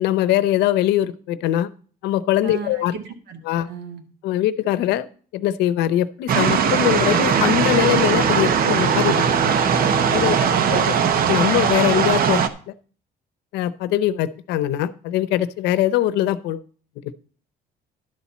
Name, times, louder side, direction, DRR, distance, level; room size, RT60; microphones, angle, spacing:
voice 1, 0.0-1.7 2.0-2.9 3.5-3.7 4.2-5.1 5.3-9.2 10.1-10.4 10.7-12.7 13.5-16.6 17.0-17.1, left 13 dB, 85° left, 15 dB, 0.6 m, -22 dB
voice 2, 2.4-3.0 3.3-3.4 3.7-4.0 10.2-10.8, right 5 dB, 80° right, 6 dB, 1.7 m, -34 dB
sound 1, 6.3-12.5, right 7 dB, 60° right, 0.8 m, -19 dB
sound 2, 6.8-12.0, left 1 dB, 30° right, 1.1 m, -31 dB
11.5 x 4.2 x 7.1 m, 0.43 s
cardioid pair, 110°, 17 cm